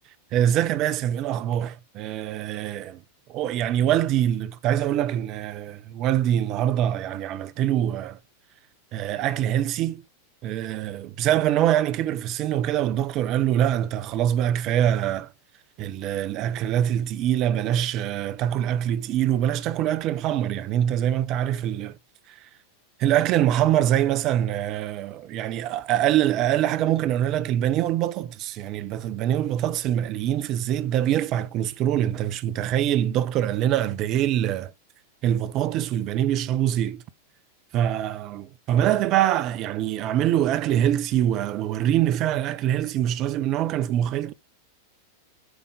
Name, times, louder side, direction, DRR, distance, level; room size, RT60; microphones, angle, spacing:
voice 1, 0.3-3.0 3.3-8.2 8.9-10.0 10.4-15.3 15.8-22.0 23.0-34.7 35.2-37.0 37.7-44.3, right 11 dB, 35° right, 0.7 m, -24 dB
8.1 x 3.7 x 5.3 m
figure-of-eight pair, 90°, 0 cm